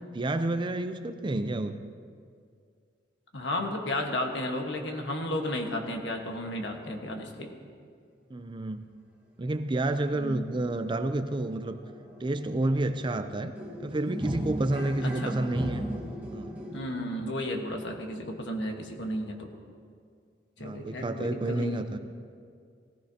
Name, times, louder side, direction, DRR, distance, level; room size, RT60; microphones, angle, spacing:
voice 1, 0.1-1.8 8.3-8.9 9.4-11.8 12.2-13.5 13.8-15.8 16.3-16.6 20.6-22.0, right 2 dB, 25° right, 9 dB, 0.5 m, -30 dB
voice 2, 3.3-7.5 10.1-10.6 15.0-15.3 16.7-19.5 20.6-21.8, left 1 dB, 70° left, 3 dB, 1.4 m, -33 dB
sound 1, 10.4-10.5 10.8-16.8, right 1 dB, 5° right, 1.5 m, -38 dB
18.5 x 14.0 x 2.8 m, 2.2 s
head